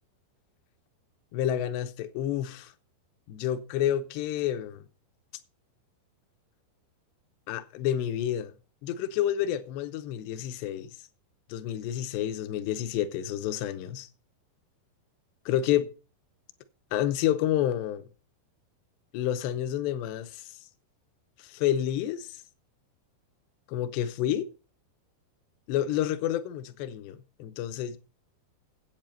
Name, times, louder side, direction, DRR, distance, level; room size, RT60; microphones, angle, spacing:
voice 1, 1.3-2.7 3.3-4.9 7.5-8.5 8.8-10.9 11.5-14.1 15.5-15.9 16.9-18.1 19.1-20.6 21.4-22.4 23.7-24.5 25.7-28.0, left 11 dB, 80° left, 2.8 m, -29 dB
9.1 x 8.2 x 6.6 m
omnidirectional pair, 5.3 m